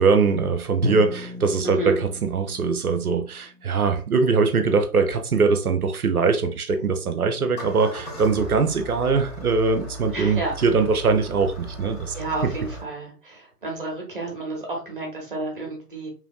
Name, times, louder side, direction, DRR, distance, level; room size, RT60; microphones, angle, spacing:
voice 1, 0.0-12.1, right 4 dB, 65° right, 0.6 m, -22 dB
Drum, 0.8-4.8, left 1 dB, 5° left, 1.0 m, -34 dB
voice 2, 1.6-2.0 10.1-10.5 12.1-16.1, right 2 dB, 35° right, 0.9 m, -31 dB
Engine starting, 7.6-12.8, right 1 dB, 40° left, 1.1 m, -37 dB
3.0 x 2.5 x 2.3 m
figure-of-eight pair, 145°, 48 cm